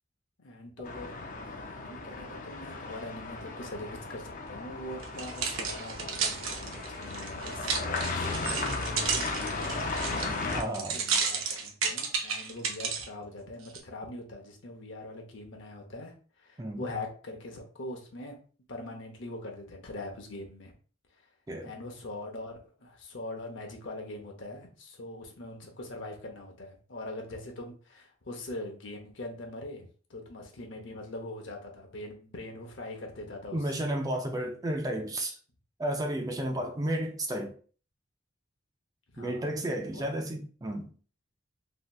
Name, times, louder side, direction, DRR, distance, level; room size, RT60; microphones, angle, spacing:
voice 1, 0.4-1.1 1.4-10.3 10.9-18.4 18.7-20.7 21.6-33.8 36.5-36.9 39.1-40.1, left 2 dB, 65° left, 0.8 m, -42 dB
sound 1, 0.8-10.6, left 3 dB, 40° left, 0.4 m, -36 dB
sound 2, 5.0-13.1 13.7-13.8, right 5 dB, 85° right, 0.6 m, -32 dB
voice 2, 10.5-11.0 16.6-16.8 21.5-21.7 33.5-35.4 35.8-37.5 39.2-40.9, right 1 dB, 20° right, 0.4 m, -32 dB
3.1 x 2.8 x 2.2 m
head